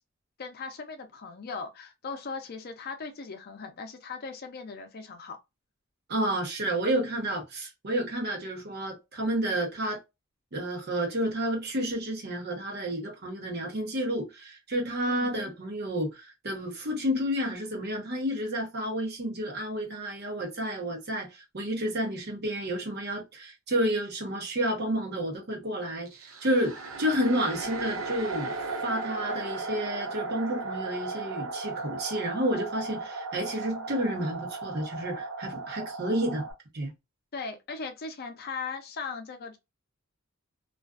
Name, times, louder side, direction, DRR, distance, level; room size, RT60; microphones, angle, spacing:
voice 1, 0.4-5.4 15.0-15.4 37.3-39.6, left 4 dB, 50° left, 0.5 m, -38 dB
voice 2, 6.1-10.0 10.5-26.1 26.4-28.5 28.8-36.5 36.7-36.9, right 1 dB, 50° right, 0.8 m, -30 dB
sound 1, 26.1-36.5, right 3 dB, 80° right, 0.7 m, -36 dB
2.4 x 2.3 x 2.3 m
head